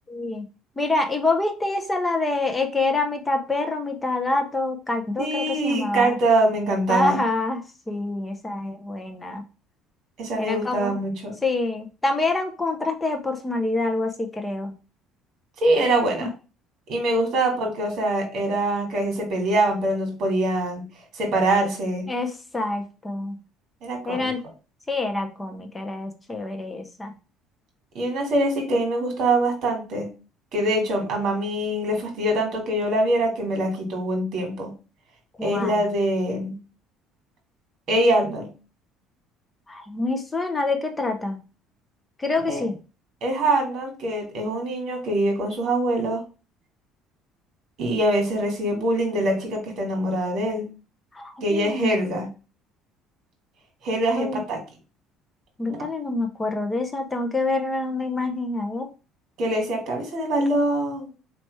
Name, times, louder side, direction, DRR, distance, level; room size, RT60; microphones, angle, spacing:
voice 1, 0.1-0.5 0.8-6.2 6.9-9.4 10.4-11.0 11.4-14.8 16.2-16.3 22.1-23.4 24.0-24.4 24.9-27.1 35.4-35.8 39.7-41.4 42.2-42.8 51.1-52.0 54.1-54.4 55.6-58.9, left 2 dB, 10° left, 4 dB, 0.7 m, -26 dB
voice 2, 5.2-7.2 10.2-11.3 15.6-16.3 16.9-20.8 21.1-22.1 23.8-24.3 27.9-30.1 30.5-34.7 35.4-36.6 37.9-38.5 42.5-42.7 43.2-46.2 47.8-50.7 51.4-52.3 53.8-54.6 55.7-55.9 59.4-61.1, right 1 dB, 50° right, 2 dB, 1.9 m, -24 dB
4.1 x 3.3 x 3.1 m, 0.32 s
cardioid pair, 165°, 0 cm